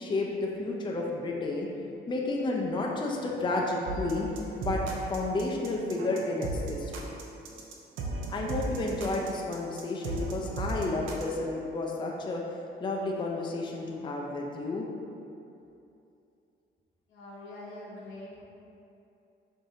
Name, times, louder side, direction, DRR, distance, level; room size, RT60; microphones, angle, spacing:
voice 1, 0.0-1.7 2.1-4.3 4.6-4.8 5.1-6.9 8.3-12.4 12.8-14.9, left 2 dB, 25° left, -1 dB, 0.4 m, -31 dB
sound 1, 3.9-11.3, right 2 dB, 80° right, 0.5 m, -36 dB
voice 2, 17.1-18.4, left 1 dB, 85° left, -6 dB, 0.9 m, -44 dB
4.7 x 2.7 x 2.7 m, 2.7 s
cardioid pair, 90°, 20 cm